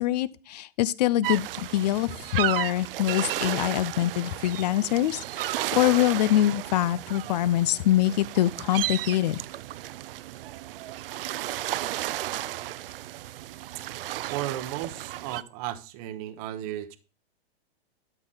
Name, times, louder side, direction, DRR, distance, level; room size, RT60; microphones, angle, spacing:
voice 1, 0.0-9.4, left 13 dB, 40° left, 0.4 m, -24 dB
sound 1, 1.2-15.4, right 14 dB, 60° right, 0.5 m, -33 dB
voice 2, 14.3-17.0, right 13 dB, 35° right, 0.9 m, -34 dB
12.5 x 6.1 x 3.8 m
hypercardioid pair, 145°, 31 cm